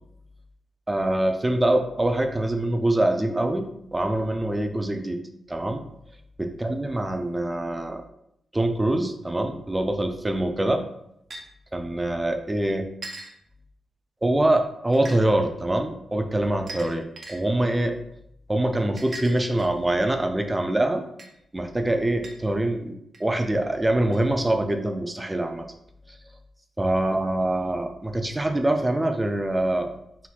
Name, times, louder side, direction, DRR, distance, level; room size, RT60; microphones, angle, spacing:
voice 1, 0.9-5.2 5.5-5.8 6.4-8.0 8.5-10.8 11.7-12.9 14.2-18.0 18.5-21.1 21.5-25.7 26.1-26.2 26.8-29.9, right 1 dB, 15° right, 5 dB, 0.4 m, -24 dB
sound 1, 11.3-11.4 13.0-13.3 14.9-15.2 16.7-17.4 19.0-19.9 21.2-21.3 22.2-22.4 23.1-23.2 24.1-24.2, right 2 dB, 45° right, 0.8 m, -39 dB
4.2 x 4.1 x 2.4 m, 0.75 s
cardioid pair, 85°, 0 cm